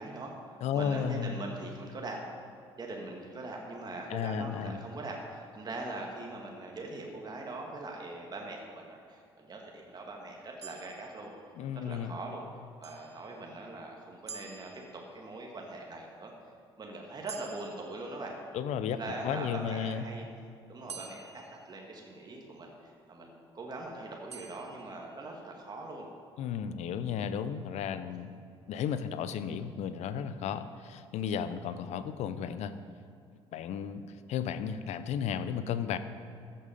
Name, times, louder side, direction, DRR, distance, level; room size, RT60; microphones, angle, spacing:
voice 1, 0.0-2.2 2.8-11.3 11.8-12.4 12.8-16.3 16.8-18.3 18.8-20.3 20.7-26.1, right 2 dB, 30° right, 0 dB, 2.1 m, -42 dB
voice 2, 0.6-1.4 4.1-4.8 11.6-12.2 18.5-19.0 19.2-20.0 26.4-28.3 28.7-32.7 33.5-34.0 34.3-36.0, left 8 dB, 55° left, 12 dB, 0.8 m, -33 dB
sound 1, 10.6-12.0 12.8-13.8 14.3-15.5 17.3-18.8 20.9-22.5 24.3-25.5, right 5 dB, 90° right, 0.6 m, -50 dB
14.0 x 8.7 x 5.2 m, 2.4 s
figure-of-eight pair, 55°, 14 cm